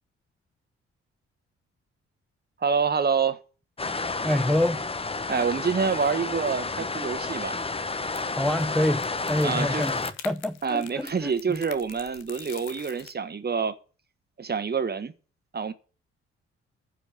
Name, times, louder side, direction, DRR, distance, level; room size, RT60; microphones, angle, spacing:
voice 1, 2.6-3.4 5.3-7.6 9.4-9.9 10.6-13.7 14.4-15.1 15.5-15.7, right 5 dB, 30° right, 1.5 m, -27 dB
sound 1, 3.8-10.1, left 3 dB, 15° left, 0.9 m, -31 dB
voice 2, 4.2-4.8 8.3-11.6, left 1 dB, ahead, 0.5 m, -27 dB
sound 2, 7.4-13.1, left 11 dB, 70° left, 0.9 m, -47 dB
14.5 x 5.1 x 8.5 m
figure-of-eight pair, 40°, 34 cm